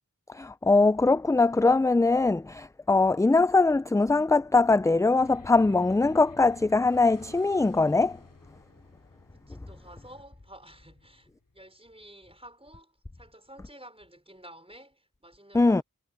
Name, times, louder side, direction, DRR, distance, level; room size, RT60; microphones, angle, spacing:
voice 1, 0.3-8.2 15.5-15.8, left 3 dB, 10° left, 0.3 m, -22 dB
sound 1, 5.1-11.7, left 3 dB, 70° left, 3.0 m, -53 dB
voice 2, 9.3-11.3 11.5-15.8, right 1 dB, 15° right, 5.3 m, -51 dB
wide cardioid pair, 45°, 34 cm